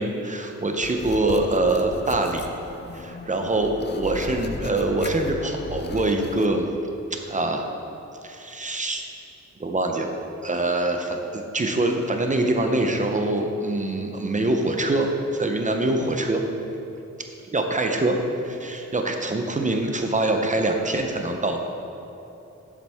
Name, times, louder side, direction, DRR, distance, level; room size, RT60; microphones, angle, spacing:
voice 1, 0.0-2.4 2.9-6.7 7.3-7.7 8.2-9.0 9.6-10.1 10.4-16.4 17.5-18.2 18.4-21.6, right 2 dB, 25° right, 3 dB, 0.7 m, -24 dB
sound 1, 0.8-6.5, left 4 dB, 35° left, 0.5 m, -36 dB
11.5 x 7.4 x 3.5 m, 2.9 s
wide cardioid pair, 160°, 29 cm